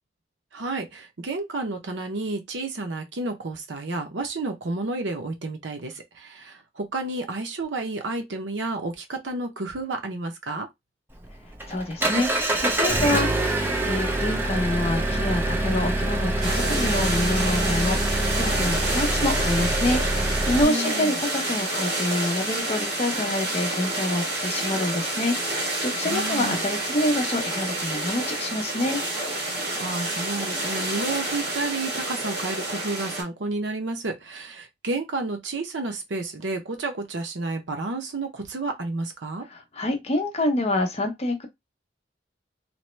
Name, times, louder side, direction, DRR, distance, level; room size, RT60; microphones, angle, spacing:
voice 1, 0.5-10.7 20.6-21.2 26.0-26.6 29.8-39.5, right 2 dB, 80° right, 0.7 m, -31 dB
Engine, 11.1-20.6, right 1 dB, 10° right, 0.5 m, -25 dB
voice 2, 11.7-29.0 39.5-41.5, left 1 dB, 35° left, 0.7 m, -27 dB
sound 1, 16.4-33.2, right 1 dB, 60° right, 1.7 m, -29 dB
2.9 x 2.1 x 3.1 m
head